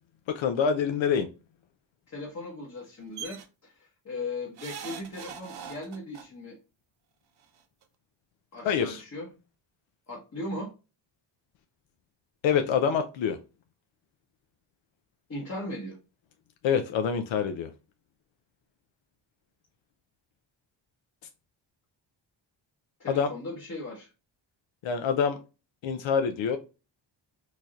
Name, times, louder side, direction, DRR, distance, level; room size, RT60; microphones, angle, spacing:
voice 1, 0.3-1.3 8.6-9.0 12.4-13.4 16.6-17.7 23.1-23.3 24.8-25.4 25.8-26.6, left 7 dB, 85° left, 0.6 m, -26 dB
voice 2, 2.1-6.6 8.5-9.3 10.1-10.7 15.3-16.0 23.0-24.1, left 2 dB, 35° left, 1.1 m, -38 dB
sound 1, 3.2-3.4 4.6-6.2 7.4-7.5 7.8-7.9, right 8 dB, 60° right, 0.7 m, -41 dB
4.7 x 2.8 x 2.3 m
wide cardioid pair, 140°, 45 cm